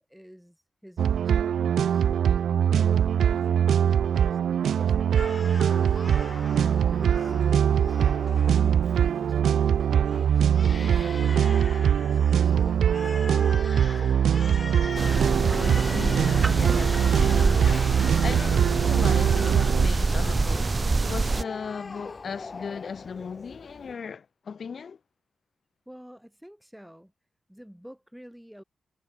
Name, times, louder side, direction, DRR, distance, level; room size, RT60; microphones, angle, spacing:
voice 1, 0.0-2.1 2.7-10.4 10.8-14.0 25.8-27.1 27.5-28.6, equal, ahead, 3.4 m, -49 dB
sound 1, 1.0-19.9, right 8 dB, 75° right, 0.7 m, -22 dB
Crying sobbing, 5.2-24.0, left 4 dB, 25° left, 1.2 m, -42 dB
sound 2, 15.0-21.4, right 3 dB, 25° right, 0.4 m, -26 dB
voice 2, 15.4-20.8 21.1-25.0, left 6 dB, 45° left, 1.9 m, -37 dB
wide cardioid pair, 175°, 0 cm